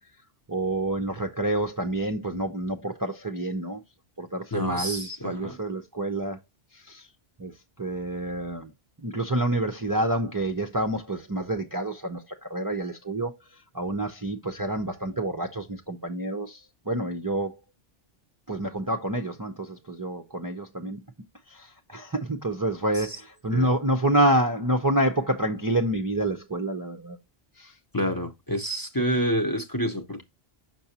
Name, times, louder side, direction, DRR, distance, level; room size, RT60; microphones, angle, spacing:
voice 1, 0.5-3.8 4.2-6.4 6.9-7.0 7.4-7.5 7.8-8.7 9.0-13.4 13.7-16.6 16.9-17.6 18.5-21.0 21.5-27.2 27.6-27.7, right 1 dB, 25° right, 0.6 m, -28 dB
voice 2, 4.5-5.6 23.5-23.7 27.9-30.2, equal, 20° left, 0.8 m, -28 dB
6.9 x 6.1 x 2.9 m
omnidirectional pair, 1.1 m